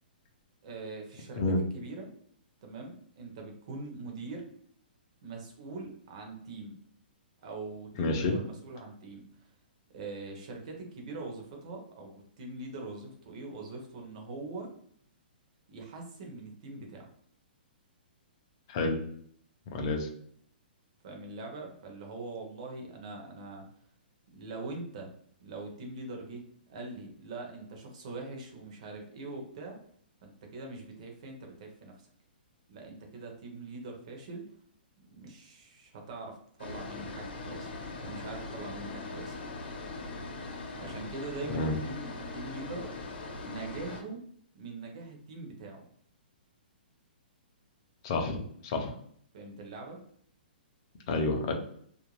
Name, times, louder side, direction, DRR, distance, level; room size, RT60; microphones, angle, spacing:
voice 1, 0.6-2.1 2.6-4.4 5.2-6.7 7.4-9.5 9.9-14.7 15.7-17.1 21.0-23.7 24.3-25.1 25.4-26.4 26.7-29.8 30.2-31.9 32.7-34.5 35.1-37.7 38.0-39.4 40.8-42.9 43.4-44.2 44.5-45.8 49.3-50.0, right 3 dB, 35° right, 1 dB, 0.7 m, -42 dB
voice 2, 8.0-8.3 18.7-19.0 19.7-20.1 41.5-41.8 48.0-48.4 48.6-48.9 51.1-51.5, left 2 dB, 25° left, 3 dB, 0.4 m, -29 dB
sound 1, 36.6-44.0, left 3 dB, 75° left, 0.7 m, -41 dB
2.4 x 2.1 x 3.0 m, 0.62 s
hypercardioid pair, 175°, 6 cm